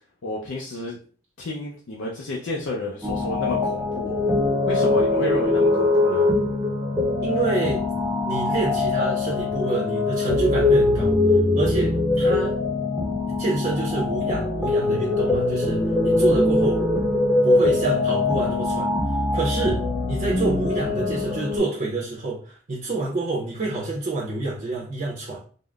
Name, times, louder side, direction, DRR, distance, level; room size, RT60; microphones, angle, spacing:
voice 1, 0.2-1.0 1.4-4.2 4.7-6.3, left 1 dB, 85° left, -2 dB, 0.5 m, -31 dB
sound 1, 3.0-21.6, left 2 dB, 5° right, 0.6 m, -22 dB
voice 2, 7.2-7.9 8.3-11.2 11.6-12.5 13.4-16.8 17.4-19.8 20.1-25.4, right 3 dB, 45° right, -3 dB, 0.6 m, -27 dB
3.5 x 2.0 x 2.3 m, 0.42 s
head